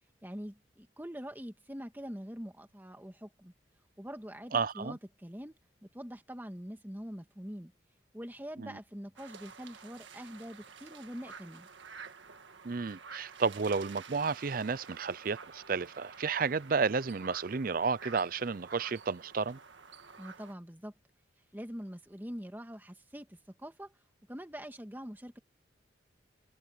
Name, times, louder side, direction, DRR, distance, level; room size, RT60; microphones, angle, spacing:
voice 1, 0.2-3.5 4.0-7.7 8.1-11.7 20.2-20.9 21.5-23.9 24.3-25.4, equal, 10° right, 1.8 m, -44 dB
voice 2, 4.5-4.9 8.6-8.8 12.6-19.6, right 5 dB, 45° right, 0.5 m, -32 dB
sound 1, 9.2-20.5, right 5 dB, 75° right, 1.7 m, -50 dB
head